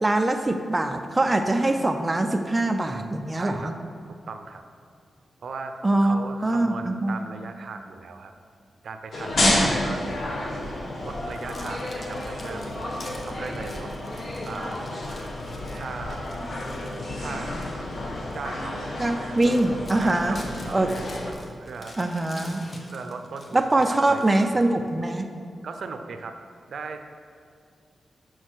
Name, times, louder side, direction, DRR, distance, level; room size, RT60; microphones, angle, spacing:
voice 1, 0.0-3.7 5.8-7.3 9.4-10.0 19.0-20.4 20.7-20.9 22.0-22.6 23.5-25.3, right 2 dB, 15° right, 5 dB, 0.5 m, -23 dB
voice 2, 3.3-3.7 4.1-4.6 5.4-8.3 8.8-10.6 11.0-13.9 14.4-14.8 15.7-16.2 17.2-17.6 18.3-19.4 20.0-21.0 21.6-22.0 22.9-24.7 25.6-26.4 26.7-27.0, right 4 dB, 70° right, 7 dB, 0.6 m, -38 dB
sound 1, 9.1-21.3, left 1 dB, 55° left, 1.2 m, -30 dB
sound 2, 11.3-17.8 18.3-18.5 19.0-19.1 19.4-24.9, left 1 dB, 35° left, 1.0 m, -47 dB
6.3 x 6.2 x 6.4 m, 2.4 s
wide cardioid pair, 135°, 0 cm